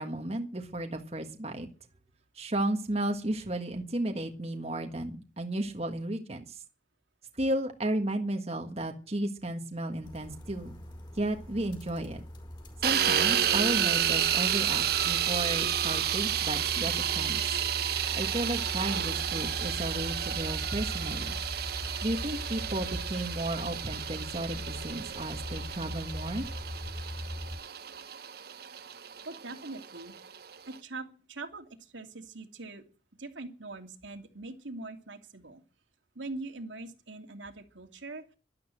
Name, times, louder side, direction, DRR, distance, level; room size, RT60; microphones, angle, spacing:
voice 1, 0.0-1.7 2.3-6.6 7.3-10.7 11.1-12.2 12.8-17.6 18.1-21.4 22.0-26.5, right 1 dB, 35° right, 4 dB, 1.6 m, -33 dB
sound 1, 10.0-27.6, left 1 dB, 25° left, 4.8 m, -41 dB
sound 2, 12.8-30.8, right 10 dB, 55° right, 0.9 m, -31 dB
voice 2, 29.2-30.3 30.7-32.8 33.2-35.6 36.1-38.3, right 2 dB, 80° right, 4 dB, 2.7 m, -42 dB
12.5 x 12.0 x 7.9 m, 0.37 s
head